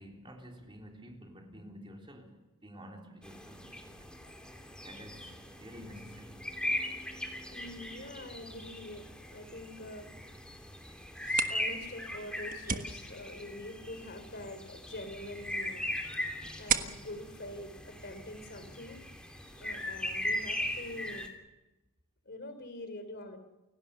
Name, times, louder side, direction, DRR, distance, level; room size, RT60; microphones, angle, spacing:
voice 1, 0.0-4.1 4.5-4.6 4.8-6.4, equal, 25° right, 3.5 m, -50 dB
sound 1, 3.2-21.3, left 1 dB, 5° left, 3.0 m, -39 dB
voice 2, 7.5-10.1 11.5-15.8 16.6-19.1 19.6-21.3 22.3-23.4, left 1 dB, 50° left, 3.6 m, -45 dB
sound 2, 11.1-18.6, right 7 dB, 40° right, 1.4 m, -39 dB
29.5 x 17.5 x 6.9 m
head